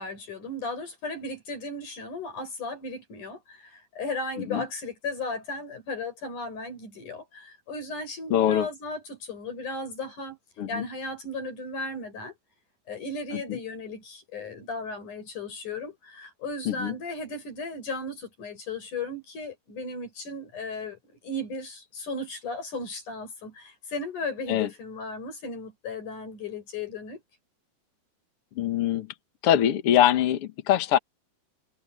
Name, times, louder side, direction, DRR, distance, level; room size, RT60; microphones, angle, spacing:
voice 1, 0.0-10.4 10.7-12.3 12.9-27.2, left 2 dB, 50° left, 8.2 m, -36 dB
voice 2, 8.3-8.7 10.6-10.9 13.5-13.6 16.6-16.9 24.5-24.7 28.5-29.1 29.4-31.0, left 11 dB, 70° left, 1.3 m, -23 dB
omnidirectional pair, 4.7 m